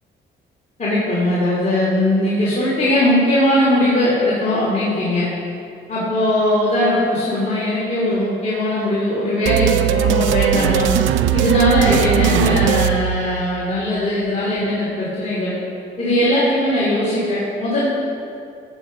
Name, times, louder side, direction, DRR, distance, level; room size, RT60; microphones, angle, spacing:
voice 1, 0.8-5.3 5.9-10.9 11.3-15.5 16.0-17.9, left 1 dB, 35° left, -8 dB, 3.2 m, -19 dB
sound 1, 9.5-13.8, right 9 dB, 75° right, 0.6 m, -19 dB
15.0 x 7.4 x 5.2 m, 2.4 s
cardioid pair, 90°, 20 cm